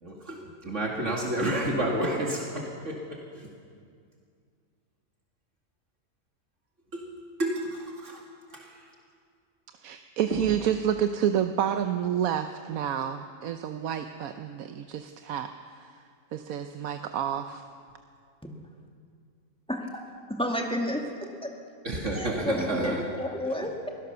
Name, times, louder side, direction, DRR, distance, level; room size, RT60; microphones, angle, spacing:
voice 1, 0.0-3.5 6.9-7.1 7.4-8.2 8.5-8.7 10.3-10.4 21.8-23.0, right 1 dB, 60° right, -1 dB, 2.6 m, -30 dB
voice 2, 9.8-16.0 16.3-17.6, right 9 dB, 90° right, 8 dB, 1.2 m, -29 dB
voice 3, 20.3-21.5 22.1-23.9, equal, 5° left, 1 dB, 2.1 m, -31 dB
23.5 x 17.0 x 6.8 m, 2.2 s
omnidirectional pair, 1.4 m